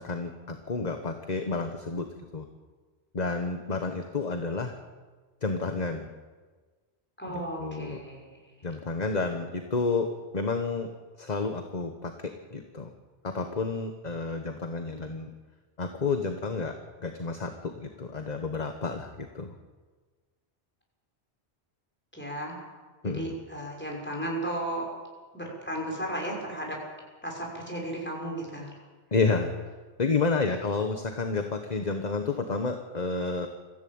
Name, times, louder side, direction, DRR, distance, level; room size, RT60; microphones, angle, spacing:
voice 1, 0.0-2.1 2.3-2.4 3.1-4.7 5.4-6.1 7.3-8.0 8.6-10.1 10.3-10.9 11.2-12.9 13.2-15.3 15.8-19.5 23.0-23.3 29.1-29.5 30.0-33.5, left 4 dB, 40° left, 6 dB, 1.4 m, -30 dB
voice 2, 7.2-8.2 8.6-8.7 22.1-22.5 23.0-24.9 25.3-26.8 27.2-28.7, right 1 dB, 10° left, -2 dB, 6.0 m, -34 dB
23.5 x 15.0 x 8.8 m, 1.4 s
omnidirectional pair, 1.2 m